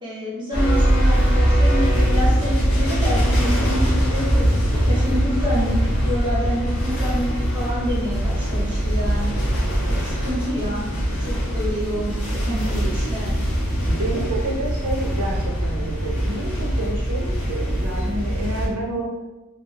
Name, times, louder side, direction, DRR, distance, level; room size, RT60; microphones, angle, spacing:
voice 1, 0.0-5.7 6.0-9.4 9.9-10.8 11.2-13.3, equal, 20° right, -8 dB, 1.2 m, -28 dB
sound 1, 0.5-18.7, equal, 75° left, 1.1 m, -21 dB
voice 2, 13.9-19.1, right 1 dB, 80° right, -1 dB, 0.6 m, -29 dB
4.1 x 2.4 x 3.2 m, 1.1 s
head